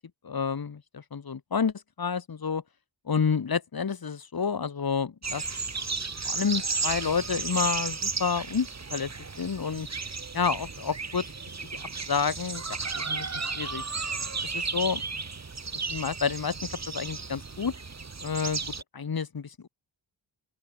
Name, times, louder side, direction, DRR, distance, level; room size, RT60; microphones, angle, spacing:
voice 1, 0.2-2.6 3.1-5.9 6.2-9.1 9.4-9.9 10.3-11.2 12.1-12.6 12.9-13.8 14.4-15.0 15.7-16.5 16.9-17.7 18.2-18.6 18.9-19.7, left 6 dB, 50° left, 3.0 m, -29 dB
sound 1, 5.2-18.8, right 4 dB, 35° right, 4.4 m, -34 dB
open air
wide cardioid pair, 180°, 47 cm